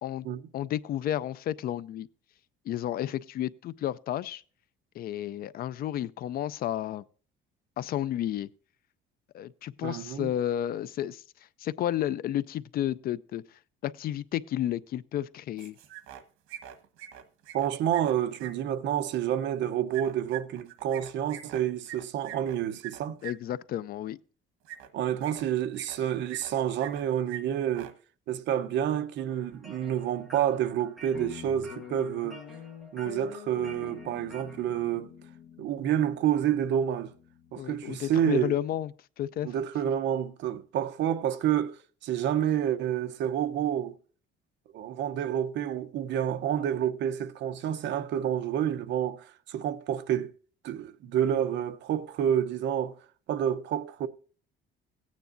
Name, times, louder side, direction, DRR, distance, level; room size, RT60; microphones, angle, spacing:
voice 1, 0.5-2.1 2.7-4.4 5.0-7.0 7.8-8.5 9.3-11.2 11.6-13.4 13.8-15.7 23.2-24.2 37.6-38.9 39.2-39.5, left 12 dB, 45° left, 0.4 m, -31 dB
voice 2, 9.8-10.3 17.5-23.2 24.9-27.9 28.3-32.4 32.9-35.1 35.6-37.1 37.5-38.5 39.4-43.9 44.7-50.3 50.6-52.9 53.3-54.1, right 10 dB, 60° right, 0.7 m, -29 dB
sound 1, 15.6-16.2 16.5-18.5 19.9-23.3 24.6-24.9 25.2-26.0 26.3-27.0 27.3-27.4 27.7-27.9, right 12 dB, 90° right, 1.3 m, -43 dB
sound 2, 29.3-34.6, right 2 dB, ahead, 2.3 m, -51 dB
Guitar, 31.1-37.8, left 9 dB, 65° left, 1.1 m, -46 dB
16.0 x 9.3 x 2.5 m
cardioid pair, 165°, 21 cm